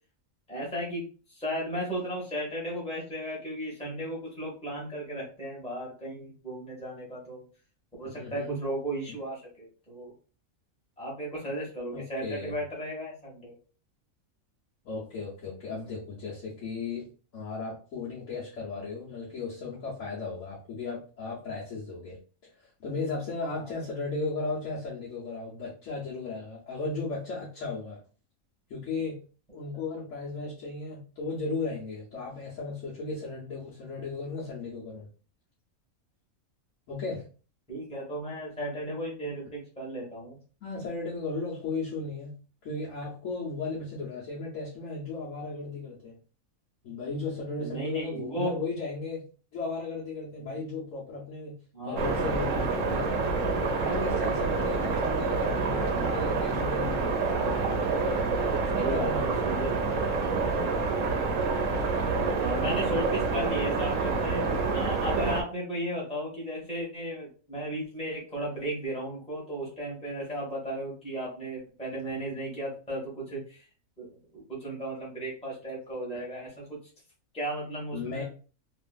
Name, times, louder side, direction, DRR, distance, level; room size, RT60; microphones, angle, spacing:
voice 1, 0.5-1.1 1.3-7.4 8.0-10.1 11.0-13.5 23.6-23.7 37.7-40.4 47.6-48.6 50.4-50.5 51.7-52.2 58.7-59.9 62.3-64.5 64.7-73.6 74.0-74.1 74.3-76.8 77.3-78.2, right 1 dB, 5° left, -5 dB, 1.0 m, -35 dB
voice 2, 8.0-8.7 9.1-9.2 11.9-12.6 14.8-22.2 22.6-28.0 28.7-29.2 29.5-35.1 36.9-37.3 40.6-42.4 42.6-46.2 46.8-49.2 49.5-53.3 53.6-57.5 58.7-59.3 77.9-78.2, left 3 dB, 65° left, -7 dB, 1.2 m, -35 dB
sound 1, 52.0-65.4, right 4 dB, 70° right, 1.0 m, -27 dB
3.0 x 2.5 x 2.3 m, 0.37 s
omnidirectional pair, 1.4 m